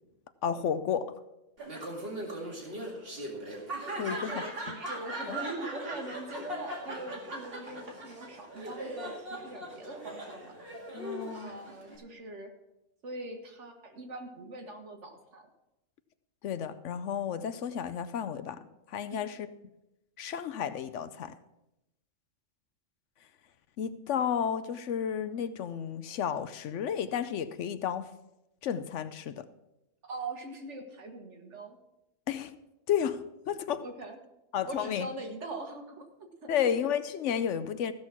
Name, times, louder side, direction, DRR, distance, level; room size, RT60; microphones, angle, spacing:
voice 1, 0.4-1.2 4.0-4.4 5.3-5.4 10.9-11.5 16.4-19.5 20.2-21.4 23.8-28.1 28.6-29.5 32.3-32.5 32.9-33.8 34.5-35.1 36.5-37.9, left 8 dB, 70° left, 13 dB, 0.9 m, -32 dB
Laughter, 1.6-12.0, right 1 dB, 45° right, 2.4 m, -39 dB
voice 2, 4.0-10.6 11.3-12.5 13.0-15.4 19.1-19.3 30.0-31.8 33.8-34.2 34.7-36.7, right 2 dB, 65° right, 4 dB, 1.8 m, -42 dB
14.5 x 6.3 x 6.0 m, 0.91 s
omnidirectional pair, 1.3 m